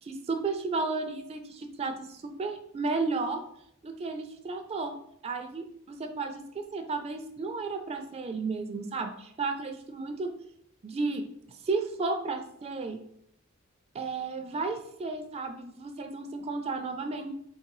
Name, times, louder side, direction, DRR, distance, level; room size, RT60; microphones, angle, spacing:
voice 1, 0.0-3.4 3.8-5.0 5.2-10.3 10.8-13.0 13.9-17.3, right 3 dB, 30° right, 6 dB, 0.4 m, -33 dB
3.7 x 2.9 x 4.7 m, 0.71 s
head